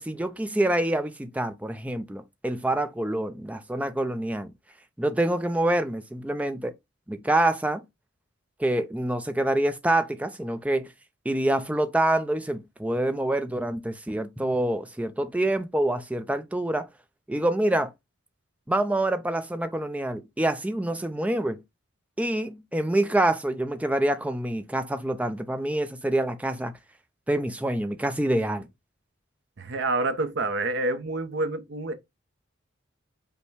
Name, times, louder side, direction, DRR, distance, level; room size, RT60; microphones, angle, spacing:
voice 1, 0.0-4.5 5.0-6.7 7.1-7.8 8.6-10.9 11.3-16.9 17.3-17.9 18.7-21.6 22.2-26.7 27.3-28.7, right 1 dB, 5° right, 0.4 m, -26 dB
voice 2, 29.6-31.9, right 2 dB, 55° right, 0.6 m, -28 dB
5.4 x 2.1 x 4.6 m
head